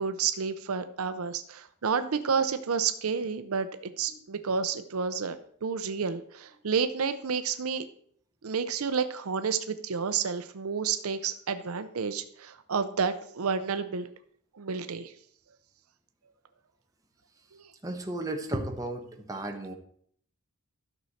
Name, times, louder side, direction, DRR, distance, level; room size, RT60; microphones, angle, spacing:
voice 1, 0.0-7.8 8.4-14.1 14.5-15.1, right 6 dB, 75° right, 10 dB, 0.6 m, -30 dB
voice 2, 17.8-19.7, right 1 dB, 15° right, 3 dB, 1.1 m, -34 dB
12.5 x 6.4 x 4.2 m, 0.62 s
head